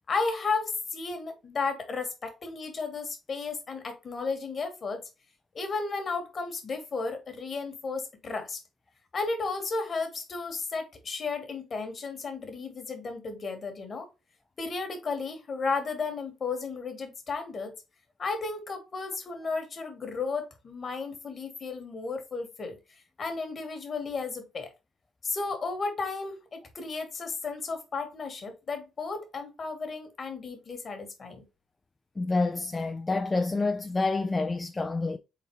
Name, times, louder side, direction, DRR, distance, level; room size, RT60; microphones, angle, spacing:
voice 1, 0.1-5.0 5.5-8.6 9.1-14.1 14.6-17.7 18.2-22.8 23.2-24.7 25.2-31.4, left 4 dB, 45° left, 1.4 m, -33 dB
voice 2, 32.2-35.2, left 3 dB, 25° left, 0.4 m, -28 dB
4.0 x 3.9 x 3.0 m
cardioid pair, 90°, 0 cm